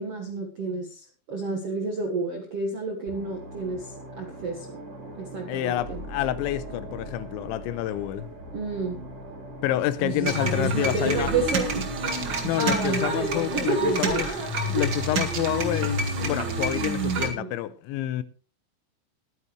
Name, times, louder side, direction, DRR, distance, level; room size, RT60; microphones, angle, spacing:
voice 1, 0.0-4.8 5.2-6.0 8.5-9.0 10.0-11.8 12.5-14.9 17.2-17.5, right 3 dB, 65° right, 1.5 m, -30 dB
sound 1, 3.1-16.4, right 1 dB, 30° right, 6.3 m, -41 dB
voice 2, 5.5-8.3 9.6-11.3 12.4-14.3 14.7-18.2, left 13 dB, 80° left, 3.1 m, -28 dB
sound 2, 10.2-17.3, right 2 dB, 90° right, 1.0 m, -28 dB
22.0 x 9.5 x 3.2 m
omnidirectional pair, 5.4 m